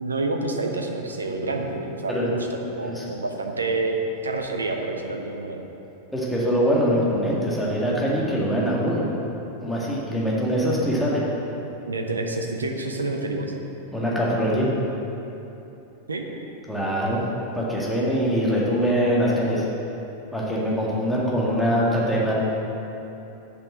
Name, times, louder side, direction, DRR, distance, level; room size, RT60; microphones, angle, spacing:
voice 1, 0.0-5.6 11.9-13.5 16.1-16.3, right 2 dB, 75° right, 3 dB, 0.9 m, -28 dB
voice 2, 6.1-9.1 9.6-11.2 13.9-14.7 16.7-17.2 17.5-19.6 20.3-22.4, equal, 5° left, -6 dB, 2.0 m, -23 dB
7.8 x 5.9 x 7.3 m, 3.0 s
figure-of-eight pair, 90°, 0 cm